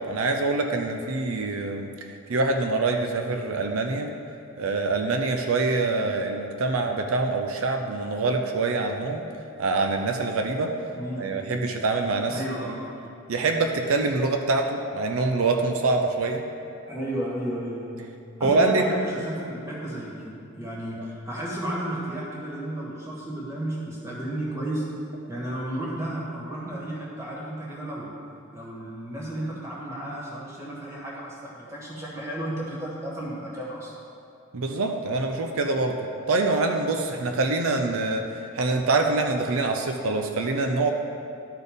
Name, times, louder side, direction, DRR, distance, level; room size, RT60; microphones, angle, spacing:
voice 1, 0.0-4.1 4.6-9.2 9.6-10.7 11.2-12.7 13.3-16.4 18.4-18.8 21.0-21.1 34.5-36.0 36.3-40.9, right 3 dB, 85° right, 4 dB, 0.6 m, -25 dB
voice 2, 10.9-11.2 12.3-12.9 16.8-18.0 18.4-20.3 20.5-24.8 25.3-28.1 28.5-33.9, right 1 dB, 15° right, -6 dB, 1.8 m, -33 dB
12.0 x 4.3 x 5.2 m, 2.6 s
head